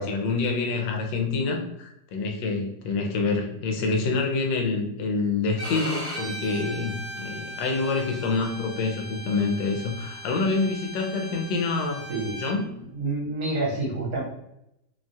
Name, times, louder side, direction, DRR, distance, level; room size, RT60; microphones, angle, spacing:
voice 1, 0.0-12.0 12.3-12.7, left 3 dB, 75° left, 3 dB, 1.2 m, -27 dB
Bowed string instrument, 5.6-12.5, equal, 35° right, 1.0 m, -38 dB
voice 2, 12.9-14.2, right 2 dB, 65° right, -4 dB, 1.4 m, -28 dB
3.2 x 2.3 x 2.5 m, 0.83 s
omnidirectional pair, 2.0 m